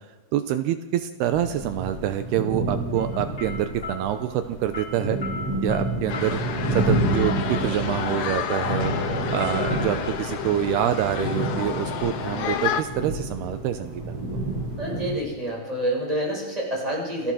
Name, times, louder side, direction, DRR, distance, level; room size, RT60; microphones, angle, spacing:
voice 1, 0.3-5.2 5.6-14.2, right 11 dB, 80° right, 9 dB, 2.8 m, -26 dB
sound 1, 1.2-15.2, right 1 dB, 35° right, 8.6 m, -29 dB
sound 2, 2.9-12.8, left 3 dB, 25° left, 7.7 m, -40 dB
sound 3, 6.1-12.8, left 8 dB, 60° left, 2.5 m, -30 dB
voice 2, 14.8-17.3, right 1 dB, 10° right, -2 dB, 6.3 m, -28 dB
28.5 x 20.0 x 6.3 m, 1.3 s
omnidirectional pair, 4.7 m